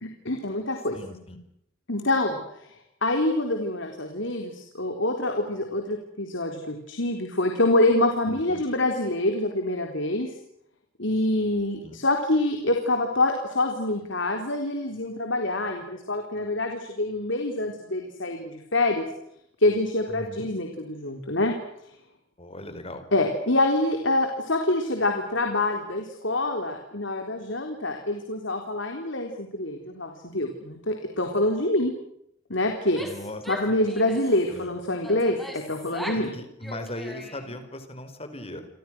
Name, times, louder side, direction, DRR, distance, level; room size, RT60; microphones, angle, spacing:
voice 1, 0.0-1.0 1.9-2.4 2.6-2.7 3.0-10.3 11.0-19.1 19.6-21.5 23.1-31.9 32.5-33.0 33.5-36.4, left 2 dB, 65° left, 4 dB, 4.0 m, -26 dB
voice 2, 0.9-1.4 8.3-8.6 11.8-12.0 20.1-20.5 22.4-23.0 33.0-33.4 34.5-34.7 36.1-38.7, left 1 dB, 30° left, 9 dB, 4.8 m, -38 dB
Female speech woman speaking / Yell, 32.8-34.4 35.0-36.3 36.6-37.6, left 1 dB, ahead, 5.8 m, -39 dB
30.0 x 26.5 x 6.3 m, 0.74 s
head